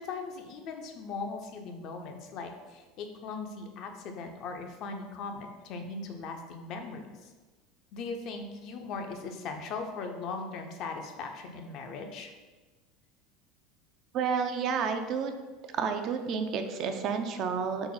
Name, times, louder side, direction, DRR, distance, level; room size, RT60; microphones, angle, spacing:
voice 1, 0.0-7.3 7.9-12.3, left 4 dB, 55° left, 4 dB, 0.5 m, -39 dB
voice 2, 14.1-15.3 15.7-17.9, right 6 dB, 50° right, 6 dB, 0.4 m, -30 dB
3.9 x 2.0 x 3.8 m, 1.3 s
hypercardioid pair, 90°, 0 cm